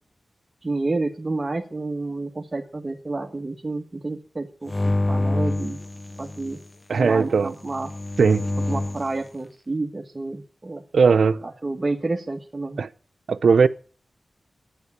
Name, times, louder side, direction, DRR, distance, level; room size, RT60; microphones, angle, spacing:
voice 1, 0.6-5.8 6.2-6.6 7.0-7.9 8.6-10.8 11.4-12.8, right 2 dB, 30° right, 1.6 m, -29 dB
sound 1, 4.7-6.6 7.6-9.1, left 2 dB, 30° left, 0.6 m, -26 dB
voice 2, 6.9-7.5 8.2-8.5 10.9-11.4 12.8-12.9 13.3-13.7, right 5 dB, 80° right, 0.8 m, -18 dB
11.5 x 9.9 x 8.4 m
wide cardioid pair, 85°, 0 cm